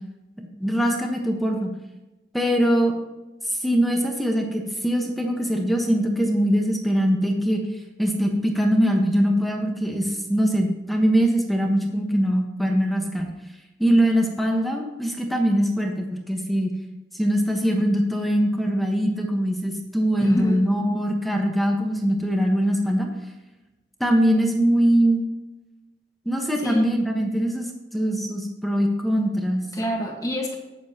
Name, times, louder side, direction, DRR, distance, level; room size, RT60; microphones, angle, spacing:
voice 1, 0.6-1.7 2.3-2.9 3.5-7.6 8.0-13.3 13.8-16.7 17.1-23.1 24.0-25.2 26.2-27.7 27.9-29.6, equal, ahead, 1 dB, 1.2 m, -22 dB
voice 2, 20.2-20.8 26.6-26.9 29.7-30.6, equal, 20° left, 0 dB, 1.5 m, -27 dB
19.0 x 7.1 x 2.9 m, 1.0 s
head